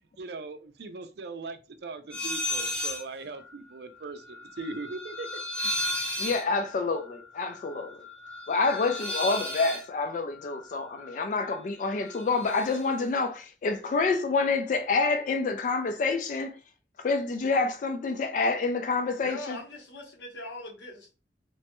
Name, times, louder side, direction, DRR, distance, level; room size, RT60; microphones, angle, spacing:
voice 1, 0.2-5.3, right 3 dB, 65° right, 0.4 m, -40 dB
sound 1, 2.1-3.1 3.4-11.6 11.8-12.9, left 1 dB, 5° left, 0.7 m, -35 dB
voice 2, 6.2-8.0 8.5-16.6 17.0-19.6, left 4 dB, 45° left, 0.3 m, -28 dB
voice 3, 19.2-21.2, left 1 dB, 90° left, 1.1 m, -41 dB
3.0 x 2.2 x 2.9 m
head